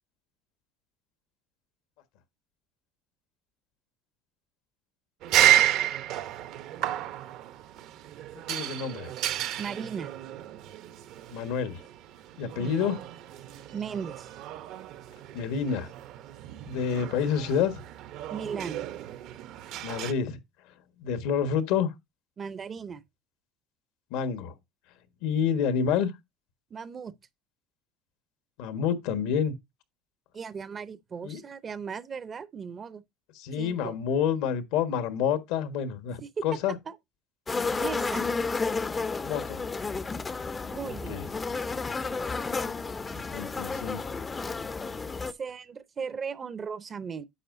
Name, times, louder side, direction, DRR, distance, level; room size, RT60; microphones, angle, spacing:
sound 1, 5.2-20.1, right 12 dB, 60° right, 0.8 m, -31 dB
voice 1, 8.5-9.1 11.3-11.8 12.4-13.0 15.3-15.9 16.7-17.8 19.8-20.4 21.0-21.9 24.1-24.5 25.2-26.1 28.6-29.5 31.2-31.4 33.3-36.8 39.2-39.6 41.1-41.2 43.1-44.1, left 7 dB, 80° left, 1.3 m, -28 dB
voice 2, 9.6-10.1 12.6-12.9 13.7-14.3 18.3-18.8 22.4-23.0 26.7-27.1 30.3-33.0 33.6-34.0 36.2-36.4 36.9-37.0 37.8-38.3 40.7-41.2 45.4-47.3, right 6 dB, 25° right, 0.6 m, -37 dB
sound 2, 37.5-45.3, left 4 dB, 15° left, 0.5 m, -32 dB
9.9 x 7.3 x 2.5 m
cardioid pair, 140°, 0 cm